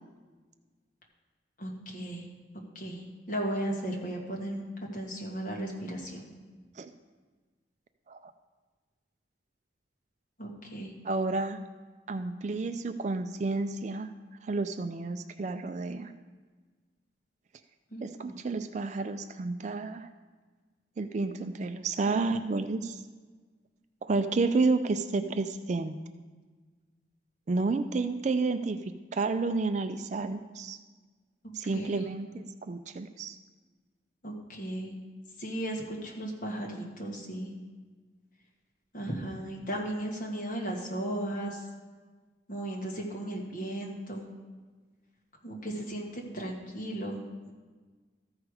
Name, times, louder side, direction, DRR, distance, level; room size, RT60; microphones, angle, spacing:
voice 1, 1.6-2.2 2.7-4.6 4.9-6.3 10.4-10.9 17.9-18.3 31.6-31.9 34.2-34.9 35.4-37.5 38.9-41.6 42.5-44.3 45.4-47.5, right 1 dB, 45° left, -1 dB, 1.6 m, -36 dB
voice 2, 11.0-11.6 12.1-14.1 14.4-16.1 18.0-20.1 21.0-23.0 24.0-26.0 27.5-30.8 31.5-33.4, right 3 dB, 40° right, 9 dB, 0.3 m, -30 dB
14.0 x 4.8 x 4.8 m, 1.4 s
head